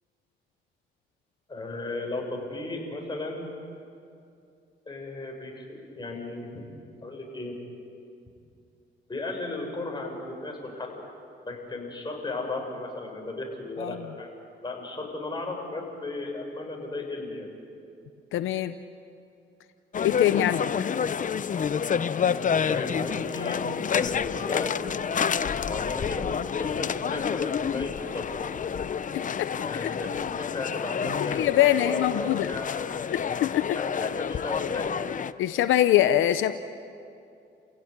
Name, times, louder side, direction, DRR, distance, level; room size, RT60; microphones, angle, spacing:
voice 1, 1.5-3.5 4.9-6.5 7.0-7.6 9.1-10.9 11.4-14.3 14.6-17.5 22.3-23.7 23.9-24.8 25.7-28.3 29.6-30.1 30.5-31.4 31.7-33.2 33.7-35.0, left 2 dB, 20° left, 1 dB, 6.5 m, -35 dB
voice 2, 18.3-18.7 20.0-20.7 29.1-29.9 31.2-32.5 33.1-33.8 35.4-36.5, left 12 dB, 85° left, 11 dB, 0.8 m, -24 dB
sound 1, 19.9-35.3, left 7 dB, 40° left, 0.8 m, -29 dB
29.5 x 16.5 x 9.6 m, 2.5 s
cardioid pair, 90°, 20 cm